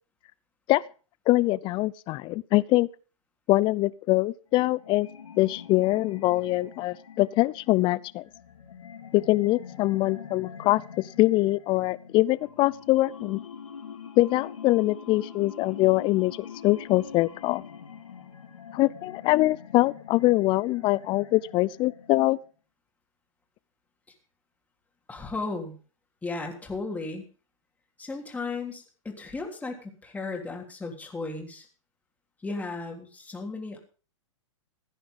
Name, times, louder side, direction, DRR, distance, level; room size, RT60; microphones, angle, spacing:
voice 1, 1.3-2.9 3.5-5.1 5.4-8.2 9.1-13.4 14.2-17.6 18.7-22.4, left 18 dB, 30° left, 0.6 m, -23 dB
sound 1, 4.6-22.5, left 7 dB, 80° left, 3.8 m, -44 dB
voice 2, 25.1-25.8 26.2-27.2 28.0-31.7 32.4-33.8, left 3 dB, 10° left, 3.3 m, -35 dB
15.5 x 10.0 x 5.3 m
hypercardioid pair, 120°, 16 cm